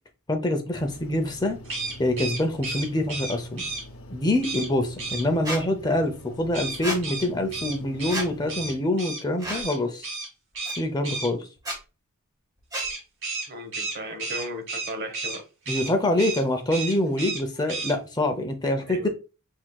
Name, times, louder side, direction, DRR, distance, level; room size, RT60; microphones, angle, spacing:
voice 1, 0.3-1.6 2.0-3.6 4.1-10.1 10.7-11.5 15.7-19.1, left 1 dB, 20° left, 6 dB, 0.6 m, -25 dB
sound 1, 0.7-8.7, equal, 55° left, 0.8 m, -44 dB
sound 2, 1.6-3.8 4.4-4.7 5.0-5.2 6.5-9.2 9.5-9.8 10.0-10.3 10.5-11.3 12.7-15.4 15.6-15.9 16.2-16.4 16.7-17.4 17.7-17.9, right 3 dB, 60° right, 2.2 m, -32 dB
Squeak, 5.4-5.6 6.8-7.0 8.1-8.3 9.4-9.7 10.6-10.7 11.6-11.8 12.7-12.9, right 1 dB, 20° right, 1.4 m, -31 dB
voice 2, 13.5-15.4 18.8-19.1, equal, 45° right, 7 dB, 1.0 m, -36 dB
6.2 x 3.6 x 2.3 m, 0.30 s
head